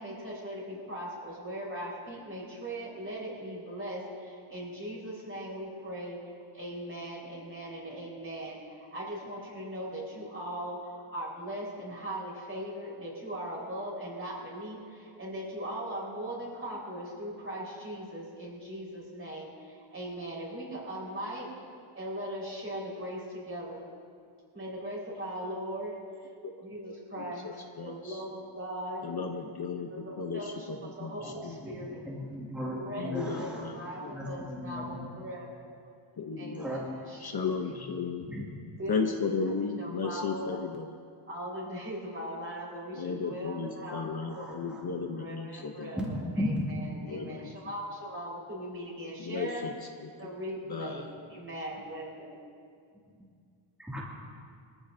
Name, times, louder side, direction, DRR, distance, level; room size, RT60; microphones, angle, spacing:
voice 1, 0.0-6.2 6.5-21.5 21.9-23.8 24.5-26.0 26.6-29.0 29.9-32.0 32.7-33.1 33.4-35.5 36.4-37.5 38.8-39.0 39.4-39.5 39.8-40.6 41.3-44.6 45.1-49.7 50.2-52.4, equal, 25° right, -5 dB, 4.5 m, -39 dB
voice 2, 26.8-28.2 29.0-31.6 32.9-34.1 36.2-36.7 37.2-38.3 38.9-40.9 42.9-46.0 47.1-47.7 49.2-50.3 50.7-51.0, left 5 dB, 50° left, 4 dB, 0.8 m, -35 dB
voice 3, 31.2-33.6 34.1-35.1 36.6-37.0 38.3-38.5 44.3-45.0 46.0-46.7 53.2-53.3 53.8-54.3, equal, ahead, -7 dB, 2.3 m, -36 dB
23.5 x 15.0 x 2.7 m, 2.3 s
wide cardioid pair, 180°, 50 cm